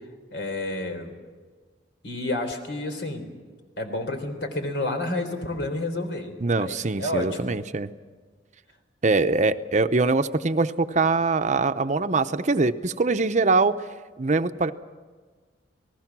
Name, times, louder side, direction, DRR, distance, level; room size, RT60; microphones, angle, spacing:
voice 1, 0.3-1.1 2.0-3.3 3.8-7.6, left 1 dB, 80° left, 6 dB, 3.8 m, -30 dB
voice 2, 6.4-7.9 9.0-13.7 14.2-14.7, right 3 dB, 45° right, 10 dB, 0.7 m, -23 dB
29.5 x 19.5 x 6.1 m, 1.5 s
head